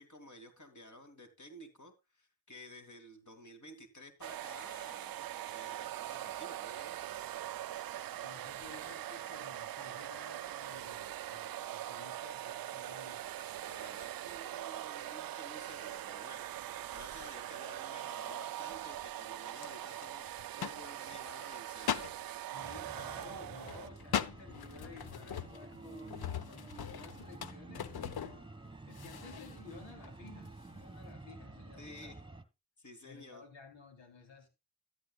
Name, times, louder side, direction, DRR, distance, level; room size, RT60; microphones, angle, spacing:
voice 1, 0.0-7.0 7.7-7.9 13.6-16.5 16.9-21.9 31.8-32.3 32.8-33.5, left 1 dB, 40° left, 2.9 m, -53 dB
sound 1, 4.2-23.9, right 12 dB, 55° right, 0.5 m, -42 dB
voice 2, 8.0-13.2 22.4-28.5 28.9-32.1 33.0-34.5, left 4 dB, 80° left, 3.6 m, -54 dB
sound 2, 18.7-19.1 19.6-21.3 21.8-22.2 22.7-28.7 28.9-29.6 30.0-30.1 30.5-30.8, left 8 dB, 55° left, 0.9 m, -40 dB
sound 3, 22.6-32.4, right 3 dB, 10° right, 1.7 m, -50 dB
14.0 x 9.5 x 2.4 m
supercardioid pair, 40°, 44 cm